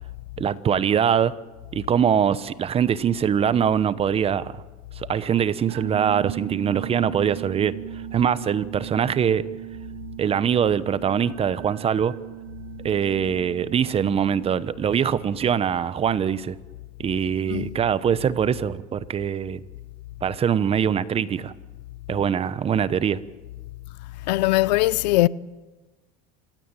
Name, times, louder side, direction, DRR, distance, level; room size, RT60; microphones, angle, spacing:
voice 1, 0.4-1.3 1.7-4.6 5.0-9.5 10.2-12.1 12.8-16.6 17.0-19.6 20.2-21.5 22.1-23.2, right 8 dB, 30° right, 1.0 m, -23 dB
sound 1, 5.7-14.9, right 16 dB, 85° right, 1.1 m, -38 dB
voice 2, 24.3-25.3, left 18 dB, 85° left, 0.7 m, -20 dB
27.5 x 16.5 x 9.1 m
supercardioid pair, 120°, 21 cm